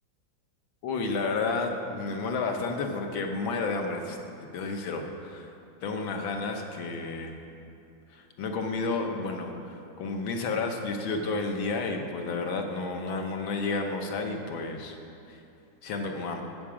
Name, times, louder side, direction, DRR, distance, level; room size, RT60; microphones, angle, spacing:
voice 1, 0.8-4.2 4.5-5.5 5.8-7.3 8.1-15.0 15.3-15.4 15.8-16.4, left 3 dB, 75° left, 3 dB, 1.8 m, -31 dB
14.5 x 8.5 x 5.0 m, 2.6 s
omnidirectional pair, 2.2 m